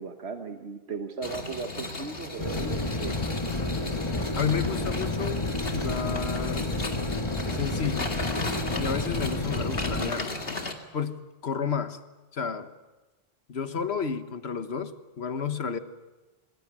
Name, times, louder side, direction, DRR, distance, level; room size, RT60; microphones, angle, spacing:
voice 1, 0.0-3.2, right 5 dB, 85° right, 6 dB, 1.5 m, -36 dB
sound 1, 1.2-10.7, left 3 dB, 65° left, 2.4 m, -36 dB
sound 2, 2.4-10.1, left 2 dB, 25° left, 1.7 m, -30 dB
voice 2, 4.3-6.7 7.5-8.1 8.8-10.3 10.9-12.0 12.3-12.7 13.5-15.8, left 6 dB, 80° left, 10 dB, 1.6 m, -31 dB
26.5 x 20.5 x 8.9 m, 1.2 s
omnidirectional pair, 1.1 m